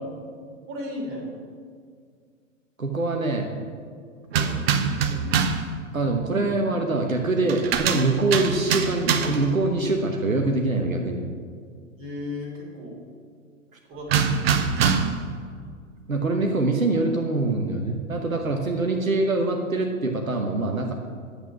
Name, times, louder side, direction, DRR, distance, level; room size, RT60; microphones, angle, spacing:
voice 1, 0.7-1.2 4.3-5.3 12.0-13.0 13.9-14.4, left 2 dB, 30° right, 0 dB, 3.2 m, -36 dB
voice 2, 2.8-3.5 5.9-11.2 16.1-20.9, right 2 dB, 85° right, 2 dB, 1.1 m, -24 dB
sound 1, 4.3-5.7 7.5-9.5 14.1-15.3, right 6 dB, 50° right, 0.9 m, -24 dB
10.5 x 8.2 x 5.9 m, 2.1 s
figure-of-eight pair, 105°, 40 cm